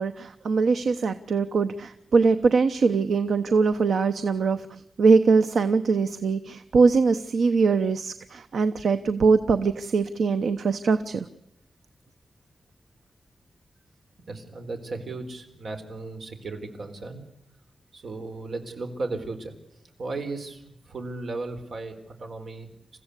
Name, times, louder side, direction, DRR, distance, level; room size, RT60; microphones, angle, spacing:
voice 1, 0.0-4.7 5.0-11.2, right 4 dB, 80° right, 10 dB, 0.9 m, -22 dB
voice 2, 14.3-17.2 17.9-19.5 20.0-22.7, right 3 dB, 65° right, 5 dB, 4.0 m, -35 dB
29.0 x 15.5 x 8.3 m, 0.82 s
wide cardioid pair, 155°, 0 cm